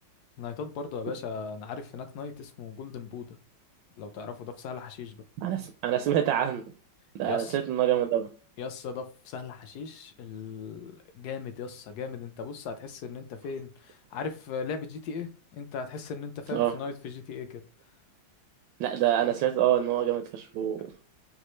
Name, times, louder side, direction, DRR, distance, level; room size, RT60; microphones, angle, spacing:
voice 1, 0.4-3.4 4.0-5.2 7.2-7.6 8.6-17.6, left 5 dB, 70° left, 1.0 m, -38 dB
voice 2, 5.4-6.6 7.2-8.3 16.5-16.7 18.8-20.9, right 11 dB, 75° right, 1.2 m, -26 dB
5.4 x 2.4 x 3.1 m
omnidirectional pair, 2.1 m